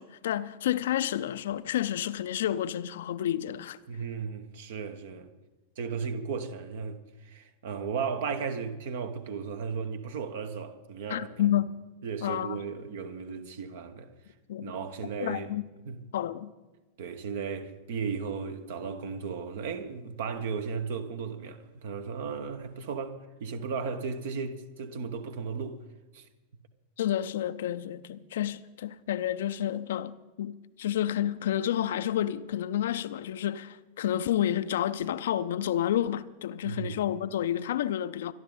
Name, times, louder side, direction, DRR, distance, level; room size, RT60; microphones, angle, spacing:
voice 1, 0.0-3.8 11.1-11.8 12.2-12.6 14.5-14.7 15.2-15.6 16.1-16.5 27.0-30.1 30.4-38.3, left 11 dB, 60° left, 0.5 m, -30 dB
voice 2, 3.9-5.3 5.8-11.5 12.0-14.1 14.6-15.5 15.9-16.0 17.0-25.8 26.1-26.3 36.6-37.0, right 5 dB, 55° right, 1.2 m, -35 dB
25.0 x 11.0 x 3.9 m
figure-of-eight pair, 90°, 0 cm